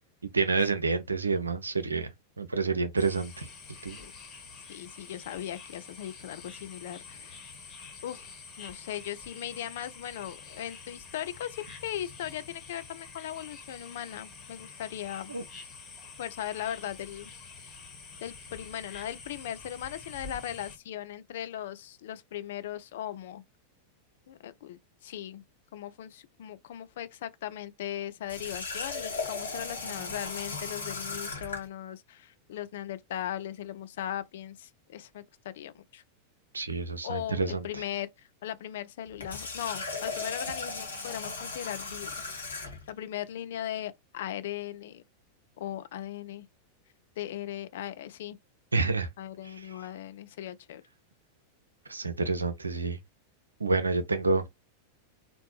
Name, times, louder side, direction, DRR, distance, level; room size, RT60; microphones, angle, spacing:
voice 1, 0.3-2.1 2.4-3.5 3.8-4.0 15.3-15.4 36.5-37.6 48.7-49.1 51.9-53.0 53.6-54.5, right 4 dB, 75° right, 0.5 m, -28 dB
sound 1, 3.0-20.8, left 4 dB, 30° left, 1.1 m, -47 dB
voice 2, 4.7-7.4 8.0-8.3 8.6-15.3 16.2-17.3 18.2-23.4 24.3-25.4 25.7-36.0 37.0-38.1 38.4-42.1 42.9-45.0 45.6-46.5 47.2-48.4 49.2-50.8, left 11 dB, 55° left, 0.3 m, -38 dB
Water tap faucet, 28.3-31.7 39.1-42.9, left 3 dB, 75° left, 0.9 m, -37 dB
2.9 x 2.1 x 3.0 m
figure-of-eight pair, 90°, 0 cm